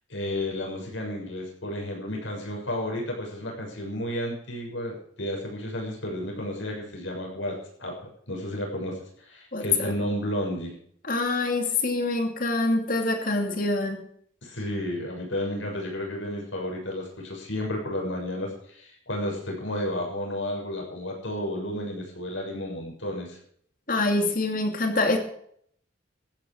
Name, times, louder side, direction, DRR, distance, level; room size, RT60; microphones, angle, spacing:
voice 1, 0.1-8.0 8.3-9.0 9.3-10.7 14.4-23.4, left 1 dB, 75° left, 0 dB, 7.0 m, -32 dB
voice 2, 9.5-9.9 11.0-14.0 23.9-25.2, left 2 dB, 45° left, 5 dB, 2.7 m, -25 dB
14.5 x 10.0 x 6.5 m, 0.64 s
head